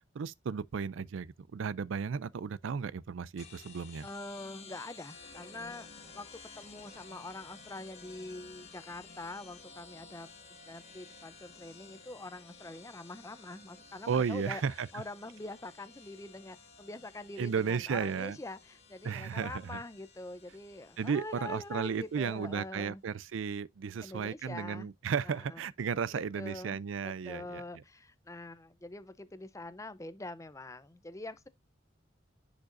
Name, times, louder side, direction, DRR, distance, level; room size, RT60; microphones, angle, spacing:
voice 1, 0.1-4.1 14.1-14.9 17.4-18.4 19.0-19.8 21.0-27.6, right 6 dB, 80° right, 0.4 m, -34 dB
sound 1, 3.4-22.5, left 4 dB, 35° left, 1.7 m, -54 dB
voice 2, 4.0-5.9 6.1-23.0 24.0-24.9 25.2-25.6 26.1-31.5, left 2 dB, 15° left, 0.5 m, -44 dB
10.5 x 5.1 x 2.5 m
head